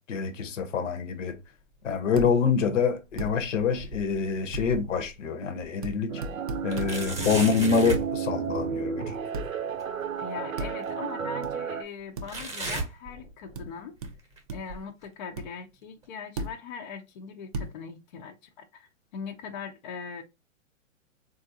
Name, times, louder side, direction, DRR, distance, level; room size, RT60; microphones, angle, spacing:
voice 1, 0.1-1.4 1.8-6.2 6.6-9.2, left 5 dB, 65° left, 0.7 m, -26 dB
sound 1, 2.2-2.8 3.2-5.1 5.6-5.7 6.7-8.1 9.8-9.9 10.8-10.9 12.3-13.7 14.0-14.4 15.0-15.1 16.0-16.1, right 3 dB, 10° right, 0.8 m, -36 dB
sound 2, 2.2-2.3 3.2-3.3 4.5-4.7 5.8-6.0 6.2-6.9 7.9-8.1 9.3-9.5 10.6-10.7 11.4-11.5 12.2-12.3 13.5-13.7 14.0-14.1 14.5-14.8 15.4-15.5 16.4-16.5 17.5-17.7, right 2 dB, 30° right, 0.4 m, -34 dB
sound 3, 6.1-11.8, right 7 dB, 85° right, 0.7 m, -32 dB
voice 2, 10.2-14.0 14.5-20.2, left 6 dB, 35° left, 0.4 m, -40 dB
3.6 x 2.4 x 2.6 m
hypercardioid pair, 130°, 40 cm